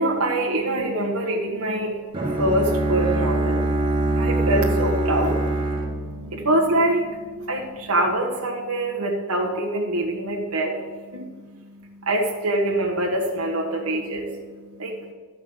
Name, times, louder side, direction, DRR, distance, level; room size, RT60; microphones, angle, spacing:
voice 1, 0.0-2.0 2.3-3.7 4.1-5.5 6.3-7.0 7.5-10.8 11.1-11.2 12.0-14.3 14.8-14.9, right 1 dB, 80° right, -1 dB, 1.4 m, -24 dB
Bowed string instrument, 2.1-7.1, right 2 dB, 20° right, 1.8 m, -24 dB
12.5 x 5.7 x 7.9 m, 1.5 s
head